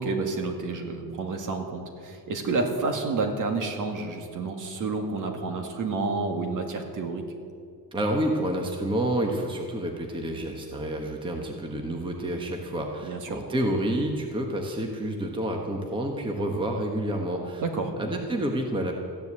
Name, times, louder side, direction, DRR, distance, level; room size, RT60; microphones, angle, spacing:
voice 1, 0.0-7.2 13.0-13.4 17.6-17.9, right 3 dB, 50° right, 4 dB, 2.0 m, -29 dB
voice 2, 7.9-17.6 18.0-18.9, right 1 dB, 10° right, 2 dB, 1.2 m, -29 dB
15.0 x 10.5 x 8.2 m, 2.3 s
cardioid pair, 175°, 41 cm